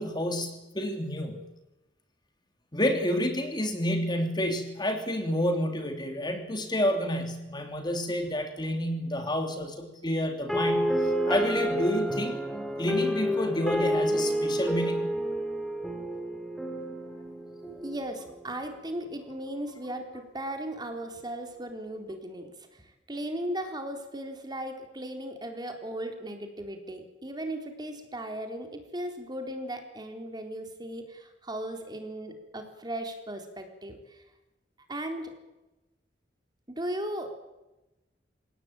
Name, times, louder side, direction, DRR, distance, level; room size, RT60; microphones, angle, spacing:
voice 1, 0.0-1.5 2.7-12.4 12.8-15.1, left 1 dB, 25° left, 5 dB, 3.0 m, -29 dB
sound 1, 10.5-18.5, equal, ahead, 3.0 m, -29 dB
voice 2, 17.8-34.2 34.9-35.3 36.7-37.4, right 1 dB, 25° right, 5 dB, 3.8 m, -37 dB
28.0 x 18.0 x 9.0 m, 1.0 s
head